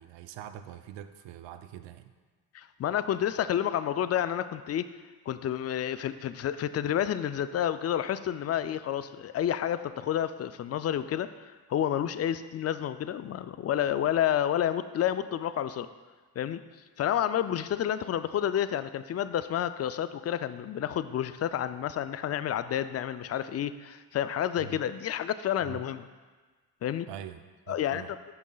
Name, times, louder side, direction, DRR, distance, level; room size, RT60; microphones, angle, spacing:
voice 1, 0.0-2.1 24.6-24.8 25.6-25.8 27.1-28.1, right 10 dB, 80° right, 10 dB, 0.5 m, -44 dB
voice 2, 2.5-4.9 5.3-15.9 16.4-16.6 17.0-26.0 26.8-27.1 27.7-28.0, left 10 dB, 40° left, 13 dB, 0.4 m, -30 dB
11.0 x 5.3 x 2.3 m, 1.4 s
supercardioid pair, 60°, 43 cm